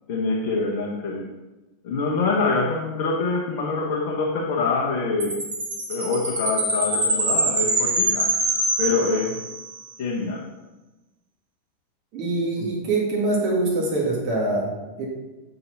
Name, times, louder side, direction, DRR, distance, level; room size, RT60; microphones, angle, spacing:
voice 1, 0.1-1.3 1.8-5.4 5.9-8.3 8.8-9.4 10.0-10.4, left 3 dB, 45° left, -3 dB, 1.0 m, -25 dB
Chime, 5.2-9.7, right 1 dB, 65° right, 1.6 m, -24 dB
voice 2, 12.1-15.1, right 2 dB, 40° right, -3 dB, 1.8 m, -24 dB
6.9 x 4.0 x 4.0 m, 1.1 s
figure-of-eight pair, 90°, 0 cm